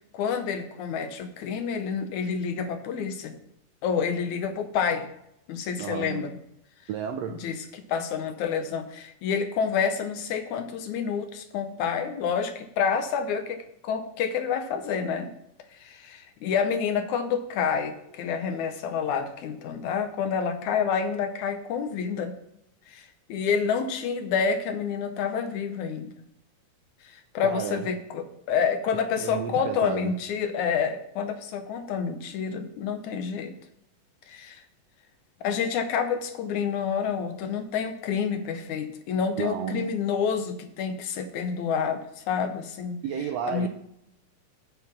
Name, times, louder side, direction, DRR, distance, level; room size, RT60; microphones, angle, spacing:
voice 1, 0.0-3.3 3.8-5.1 5.5-6.3 7.3-13.6 13.8-15.3 15.8-22.3 22.9-26.1 27.0-33.5 34.3-34.6 35.4-43.0 43.5-43.7, left 6 dB, 75° left, 2.1 m, -28 dB
voice 2, 5.8-6.3 6.9-7.5 27.4-27.9 29.2-30.2 39.4-40.0 43.0-43.7, right 8 dB, 80° right, 1.5 m, -32 dB
7.9 x 7.2 x 5.8 m
omnidirectional pair, 3.8 m